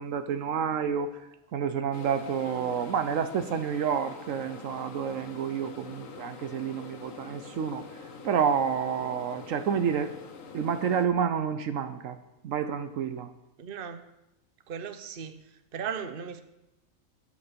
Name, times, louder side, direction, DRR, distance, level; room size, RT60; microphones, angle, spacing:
voice 1, 0.0-10.2 10.5-12.2 12.4-13.3, right 7 dB, 75° right, 10 dB, 1.1 m, -29 dB
sound 1, 1.9-11.1, left 5 dB, 70° left, 1.4 m, -45 dB
voice 2, 13.6-14.0 14.7-15.4 15.7-16.4, right 7 dB, 45° right, 9 dB, 1.0 m, -37 dB
12.5 x 8.1 x 6.8 m, 0.92 s
omnidirectional pair, 1.4 m